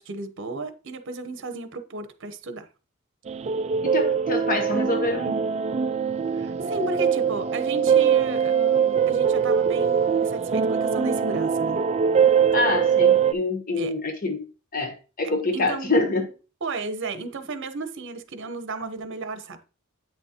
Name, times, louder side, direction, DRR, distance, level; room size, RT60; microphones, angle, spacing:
voice 1, 0.0-2.7 6.3-11.8 13.8-13.9 15.5-15.9 16.6-19.6, right 3 dB, 60° right, 0.9 m, -34 dB
sound 1, 3.3-13.3, right 7 dB, 30° right, 0.3 m, -22 dB
voice 2, 3.8-5.5 12.5-14.4 14.7-16.3, left 2 dB, 40° left, 1.0 m, -26 dB
8.7 x 6.1 x 2.9 m
head